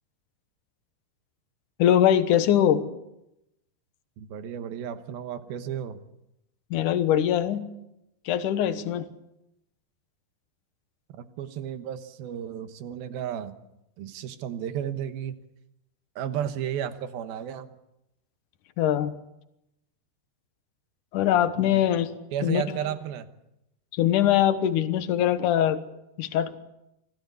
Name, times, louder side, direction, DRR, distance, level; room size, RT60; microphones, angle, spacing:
voice 1, 1.8-2.9 6.7-7.6 8.3-9.1 18.8-19.1 21.1-22.1 22.4-22.6 23.9-25.8 26.2-26.6, left 10 dB, 65° left, 11 dB, 2.2 m, -22 dB
voice 2, 4.2-6.0 11.2-13.5 14.0-15.3 16.2-17.7 21.6-21.9 22.3-23.3, right 9 dB, 70° right, 10 dB, 2.9 m, -33 dB
26.0 x 16.5 x 8.4 m, 0.87 s
omnidirectional pair, 4.8 m